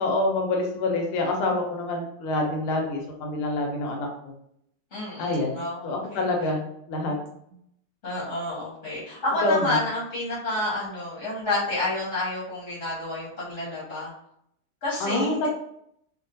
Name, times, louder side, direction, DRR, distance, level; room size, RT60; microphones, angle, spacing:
voice 1, 0.0-4.3 5.2-7.1 9.4-9.8 15.0-15.5, left 2 dB, 80° left, 1 dB, 1.5 m, -27 dB
voice 2, 4.9-6.3 8.0-14.1 14.8-15.5, left 2 dB, 50° left, -7 dB, 0.9 m, -29 dB
3.6 x 2.1 x 2.6 m, 0.74 s
omnidirectional pair, 2.4 m